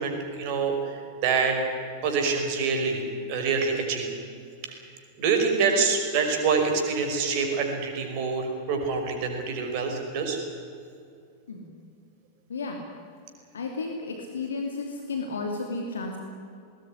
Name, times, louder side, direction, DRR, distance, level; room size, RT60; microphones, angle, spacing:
voice 1, 0.0-1.6 2.0-3.0 3.3-4.1 5.2-10.4, right 5 dB, 45° right, 3 dB, 5.4 m, -26 dB
voice 2, 12.5-12.8 13.5-16.2, left 3 dB, 70° left, 2 dB, 2.7 m, -33 dB
20.0 x 19.5 x 9.9 m, 2.4 s
figure-of-eight pair, 90°, 0 cm